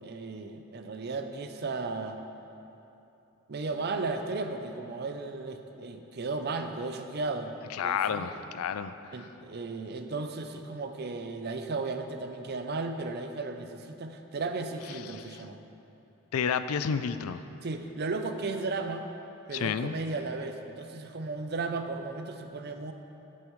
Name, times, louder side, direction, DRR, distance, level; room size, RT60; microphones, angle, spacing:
voice 1, 0.0-2.2 3.5-7.5 7.8-8.3 9.1-15.6 17.6-19.1 19.5-22.9, right 3 dB, 50° right, 7 dB, 0.5 m, -35 dB
voice 2, 7.7-8.9 15.1-15.4 16.3-17.4 19.5-19.9, left 7 dB, 85° left, 12 dB, 0.4 m, -30 dB
11.0 x 8.6 x 3.1 m, 2.9 s
head